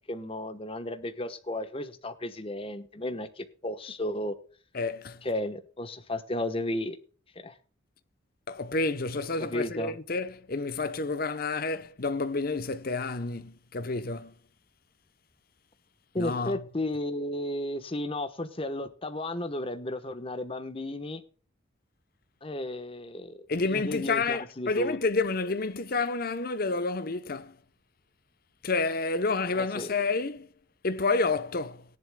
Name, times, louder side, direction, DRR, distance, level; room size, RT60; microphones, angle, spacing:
voice 1, 0.1-4.3 5.2-7.0 7.4-7.6 9.5-10.0 16.1-21.2 22.4-23.4 23.7-25.0 29.5-29.9, left 1 dB, 30° left, 1.0 m, -34 dB
voice 2, 4.7-5.2 8.5-14.3 16.2-16.6 23.5-27.6 28.6-30.5 30.8-31.8, left 3 dB, 50° left, 0.8 m, -29 dB
18.0 x 10.5 x 2.2 m
head